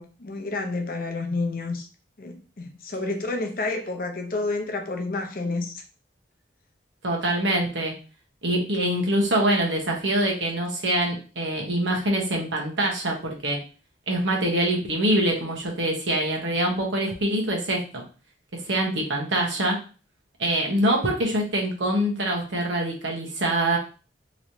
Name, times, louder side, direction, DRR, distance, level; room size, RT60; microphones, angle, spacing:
voice 1, 0.0-1.9 2.2-5.8, left 3 dB, 50° left, 4 dB, 0.6 m, -29 dB
voice 2, 7.0-7.9 8.4-13.6 14.1-18.0 18.7-19.8 20.4-23.8, right 1 dB, 90° right, 0 dB, 1.1 m, -24 dB
3.1 x 3.1 x 2.7 m, 0.36 s
head